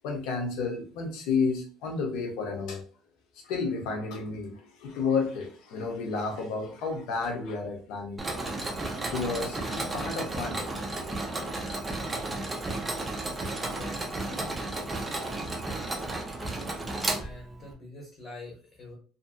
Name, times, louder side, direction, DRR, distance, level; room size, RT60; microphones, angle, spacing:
voice 1, 0.0-2.8 3.4-8.5 9.1-10.6, left 4 dB, 70° left, 2 dB, 0.8 m, -31 dB
Mechanisms, 8.2-17.7, right 2 dB, 10° right, 0.4 m, -33 dB
voice 2, 13.5-14.3 17.1-19.0, left 2 dB, 20° left, -2 dB, 0.8 m, -46 dB
2.6 x 2.5 x 2.5 m, 0.40 s
cardioid pair, 170°, 0 cm